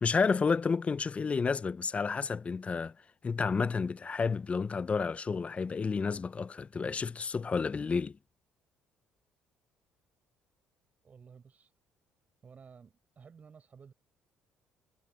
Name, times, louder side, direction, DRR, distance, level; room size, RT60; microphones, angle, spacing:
voice 1, 0.0-2.9 3.2-8.2, left 5 dB, 35° left, 0.7 m, -30 dB
voice 2, 11.0-11.7 12.4-13.9, right 6 dB, 40° right, 7.5 m, -54 dB
supercardioid pair, 65°, 4 cm